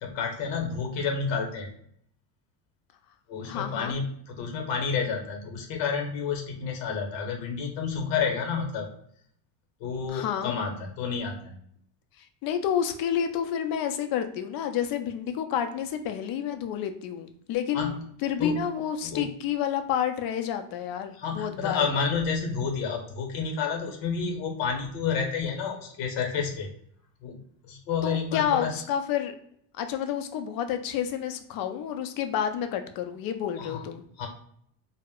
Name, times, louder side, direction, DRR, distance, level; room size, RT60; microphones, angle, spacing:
voice 1, 0.0-1.7 3.3-8.9 9.8-11.6 17.7-18.0 18.4-18.7 19.0-19.3 21.2-26.7 27.2-28.8 33.6-33.8 34.2-34.3, left 5 dB, 65° left, 2 dB, 0.9 m, -30 dB
voice 2, 3.5-3.9 10.1-10.5 12.4-18.0 18.2-21.9 28.0-29.3 29.8-34.0, left 9 dB, 50° left, 7 dB, 0.5 m, -29 dB
2.1 x 2.1 x 3.5 m, 0.67 s
supercardioid pair, 110°, 46 cm